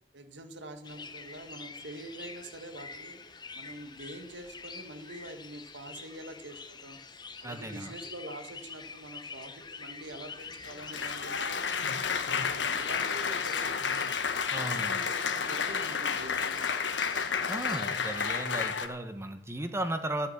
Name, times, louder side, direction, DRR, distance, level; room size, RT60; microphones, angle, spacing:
voice 1, 0.1-3.2 3.5-11.6 12.0-14.2 14.6-16.7, right 1 dB, 70° right, 8 dB, 1.8 m, -46 dB
sound 1, 0.8-18.5, left 4 dB, 25° left, 1.0 m, -46 dB
voice 2, 7.4-7.9 14.5-15.1 17.5-20.3, right 1 dB, 15° right, 7 dB, 1.3 m, -35 dB
Applause, 10.4-18.9, left 6 dB, 75° left, 1.2 m, -31 dB
13.5 x 8.7 x 8.7 m, 0.87 s
head